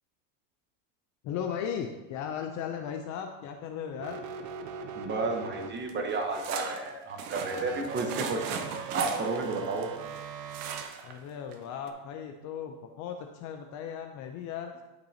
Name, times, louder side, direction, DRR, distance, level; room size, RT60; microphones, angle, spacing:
voice 1, 1.2-4.2 11.0-14.7, left 8 dB, 35° left, 5 dB, 0.5 m, -36 dB
sound 1, 4.0-6.1 7.4-10.8, right 5 dB, 35° right, 0.6 m, -40 dB
voice 2, 4.9-9.9, right 3 dB, 20° right, 3 dB, 1.1 m, -32 dB
sound 2, 5.9-10.2 10.5-11.2 11.5-11.6 11.9-12.0, right 7 dB, 60° right, 1.0 m, -38 dB
11.5 x 6.0 x 2.8 m, 1.0 s
supercardioid pair, 135°, 50 cm